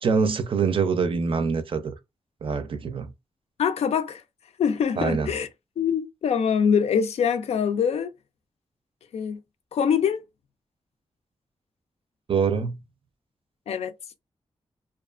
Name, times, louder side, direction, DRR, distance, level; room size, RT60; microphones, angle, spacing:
voice 1, 0.0-1.9 2.4-3.1 5.0-5.3 12.3-12.8, right 5 dB, 55° right, 0.5 m, -24 dB
voice 2, 3.6-4.2 4.6-5.5 5.8-8.1 9.1-9.4 9.7-10.2 13.7-13.9, left 7 dB, 80° left, 0.4 m, -24 dB
2.4 x 2.4 x 2.4 m
wide cardioid pair, 105°, 11 cm